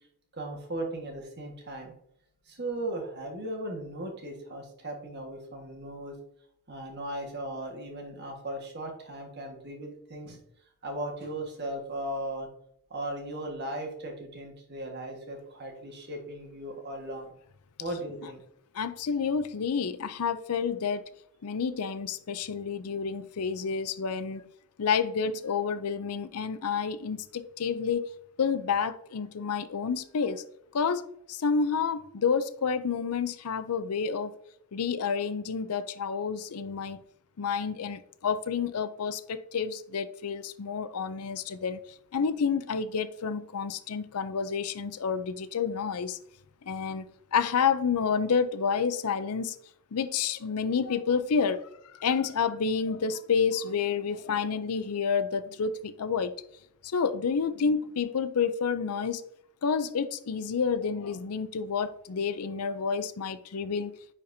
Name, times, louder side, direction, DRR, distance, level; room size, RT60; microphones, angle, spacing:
voice 1, 0.3-1.9 2.5-6.2 6.7-10.4 10.8-12.5 12.9-17.3 17.8-18.4, right 1 dB, 50° right, 1.6 m, -37 dB
voice 2, 18.7-21.0 21.4-24.4 24.8-28.0 28.4-30.4 30.7-34.3 34.7-37.0 37.4-41.8 42.1-46.2 46.7-47.0 47.3-49.6 49.9-51.7 52.0-56.3 56.8-59.2 59.6-63.9, left 6 dB, 80° left, 0.5 m, -29 dB
9.9 x 4.3 x 2.7 m
head